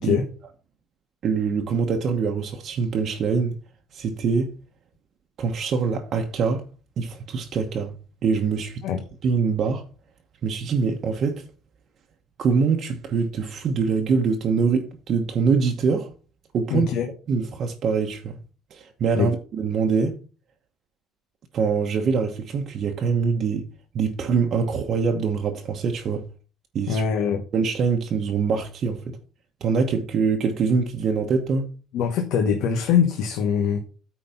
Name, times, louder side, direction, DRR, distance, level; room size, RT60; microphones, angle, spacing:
voice 1, 1.2-3.6 3.9-4.5 5.4-6.6 7.0-7.9 8.2-8.8 9.2-9.8 10.4-11.4 12.4-16.1 16.5-16.9 17.3-18.4 18.7-20.2 21.5-23.7 23.9-26.3 26.7-27.0 27.5-29.2 29.6-31.7, right 5 dB, 45° right, 1.0 m, -24 dB
voice 2, 16.7-17.1 19.2-19.3 26.9-27.4 31.9-33.8, left 7 dB, 70° left, 1.1 m, -23 dB
9.2 x 4.1 x 5.7 m
cardioid pair, 145°, 0 cm